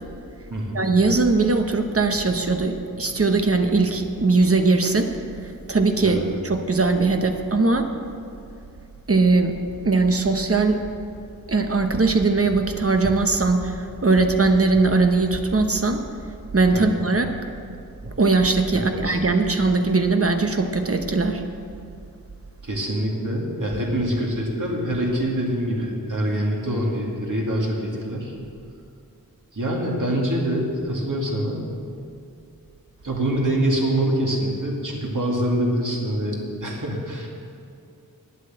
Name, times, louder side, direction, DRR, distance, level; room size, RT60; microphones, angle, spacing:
voice 1, 0.7-5.1 5.7-7.9 9.1-9.6 9.8-10.8 11.5-16.0 16.5-17.3 18.0-21.4, right 3 dB, 40° right, 6 dB, 0.9 m, -20 dB
voice 2, 22.6-28.4 29.5-31.6 33.0-37.3, right 1 dB, 55° right, -2 dB, 2.4 m, -25 dB
10.0 x 8.1 x 7.6 m, 2.4 s
wide cardioid pair, 60°, 36 cm